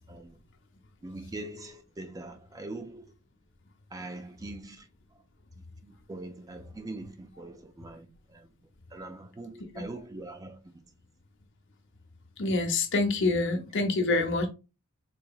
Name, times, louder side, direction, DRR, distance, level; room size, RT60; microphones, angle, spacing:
voice 1, 1.0-3.0 3.9-4.8 5.8-8.1 8.3-8.5 8.9-10.6, right 2 dB, 15° right, 0.4 m, -42 dB
voice 2, 12.4-14.5, left 3 dB, 60° left, 0.8 m, -26 dB
4.0 x 2.8 x 2.3 m
head